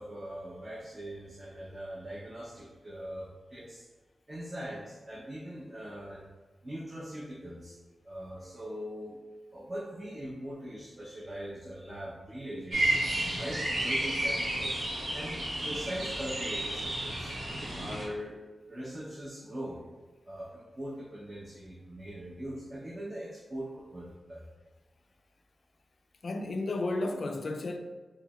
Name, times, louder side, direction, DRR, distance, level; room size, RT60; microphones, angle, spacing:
voice 1, 0.0-3.8 4.3-6.3 6.6-7.7 8.0-9.2 9.5-13.0 13.4-14.8 15.1-17.3 17.7-18.4 18.7-19.8 20.2-24.5, equal, 35° right, 0.7 m, -41 dB
sound 1, 12.7-18.0, right 1 dB, 90° right, 0.9 m, -31 dB
voice 2, 26.2-27.8, left 2 dB, 65° left, 0.3 m, -32 dB
4.6 x 3.0 x 2.3 m
wide cardioid pair, 75°, 0 cm